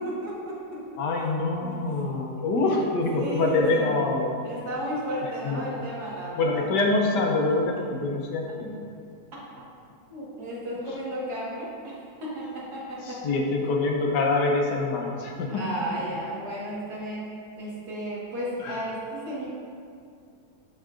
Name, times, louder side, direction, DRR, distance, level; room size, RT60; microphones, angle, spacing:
voice 1, 0.0-0.8 1.6-1.7 3.1-4.0 4.4-6.7 10.1-13.2 15.5-17.3 17.6-19.5, equal, 60° right, -6 dB, 2.2 m, -33 dB
voice 2, 1.0-4.3 5.2-5.7 6.4-8.8 13.1-15.5 18.6-18.8, left 3 dB, 70° left, 1 dB, 1.4 m, -25 dB
13.0 x 4.6 x 2.5 m, 2.3 s
omnidirectional pair, 1.9 m